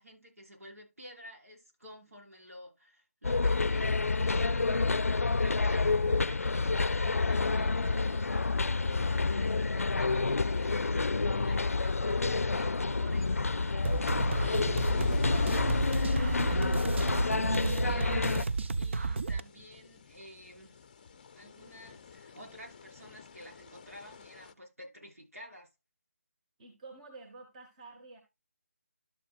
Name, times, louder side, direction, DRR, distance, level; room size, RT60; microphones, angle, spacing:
voice 1, 0.0-5.0 5.3-14.9 15.3-20.8 21.3-25.7, equal, 80° right, 5.8 m, -51 dB
sound 1, 3.2-18.4, left 3 dB, 75° left, 0.5 m, -28 dB
sound 2, 13.8-24.5, left 6 dB, 35° left, 0.6 m, -47 dB
sound 3, 13.8-19.4, right 4 dB, 55° right, 0.7 m, -32 dB
voice 2, 26.6-28.2, right 3 dB, 30° right, 1.9 m, -50 dB
12.5 x 7.0 x 2.5 m
figure-of-eight pair, 155°, 8 cm